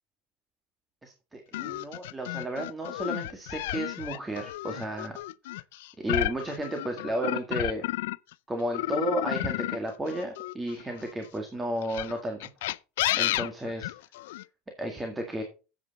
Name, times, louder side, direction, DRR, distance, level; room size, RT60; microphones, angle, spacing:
voice 1, 1.0-5.2 6.0-7.9 8.5-12.5 13.2-13.9 14.8-15.4, right 1 dB, 10° right, 3 dB, 1.8 m, -33 dB
sound 1, 1.5-8.3 8.7-11.1 11.8-14.4, left 17 dB, 85° left, 0.4 m, -32 dB
9.5 x 8.0 x 4.1 m, 0.31 s
supercardioid pair, 130°, 0 cm